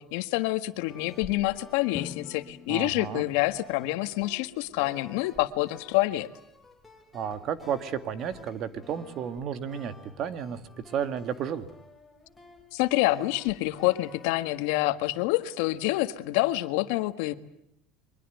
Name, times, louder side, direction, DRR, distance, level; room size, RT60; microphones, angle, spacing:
voice 1, 0.0-6.3 12.7-17.3, left 18 dB, 75° left, 11 dB, 1.6 m, -27 dB
sound 1, 0.9-16.3, left 3 dB, 5° left, 3.8 m, -52 dB
Drum, 1.9-3.9, left 8 dB, 30° left, 1.6 m, -44 dB
voice 2, 2.7-3.2 7.1-11.7, right 8 dB, 45° right, 12 dB, 2.0 m, -32 dB
23.5 x 22.0 x 9.3 m, 0.79 s
supercardioid pair, 135°, 0 cm